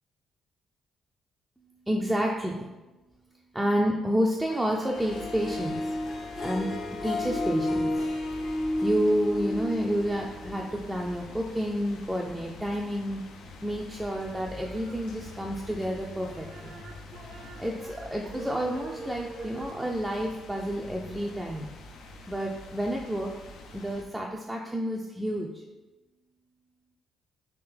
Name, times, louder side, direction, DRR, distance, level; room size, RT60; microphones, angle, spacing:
voice 1, 1.9-2.6 3.5-5.9 6.4-6.7 7.0-8.0 8.8-13.2 13.6-16.7 17.6-21.7 22.3-23.3 23.7-25.5, equal, 10° right, -1 dB, 0.3 m, -29 dB
Harp, 4.5-10.8, left 1 dB, 55° left, 0.7 m, -31 dB
sound 1, 4.9-24.0, left 2 dB, 80° left, 0.4 m, -46 dB
sound 2, 14.5-15.9 16.2-19.7, right 3 dB, 70° right, 0.6 m, -45 dB
3.5 x 2.6 x 3.3 m, 1.1 s
cardioid pair, 90°, 0 cm